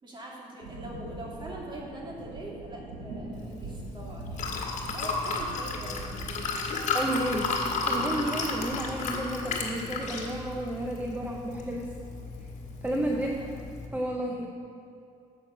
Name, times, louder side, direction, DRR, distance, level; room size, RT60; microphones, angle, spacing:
voice 1, 0.0-4.6 4.9-6.0 13.2-13.3, right 1 dB, 30° right, -2 dB, 2.3 m, -42 dB
sound 1, 0.6-13.8, right 2 dB, 85° right, 1.8 m, -44 dB
Liquid, 3.3-13.9, left 3 dB, 55° left, 1.6 m, -33 dB
voice 2, 6.9-7.5 7.9-11.9 12.8-13.3 13.9-14.5, right 1 dB, 10° right, 0 dB, 0.7 m, -31 dB
10.0 x 7.4 x 5.6 m, 2.6 s
cardioid pair, 130°, 14 cm